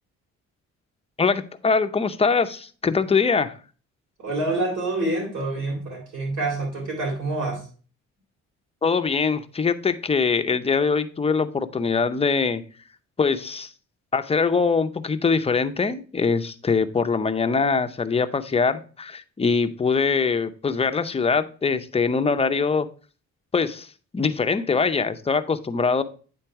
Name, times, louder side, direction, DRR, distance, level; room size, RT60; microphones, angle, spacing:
voice 1, 1.2-3.6 8.8-12.6 13.2-13.7 14.1-22.9 23.5-23.9 24.1-26.0, left 5 dB, 20° left, 9 dB, 0.6 m, -23 dB
voice 2, 4.2-7.7, right 2 dB, 70° right, -3 dB, 3.5 m, -27 dB
8.9 x 3.9 x 4.5 m, 0.39 s
cardioid pair, 90°, 30 cm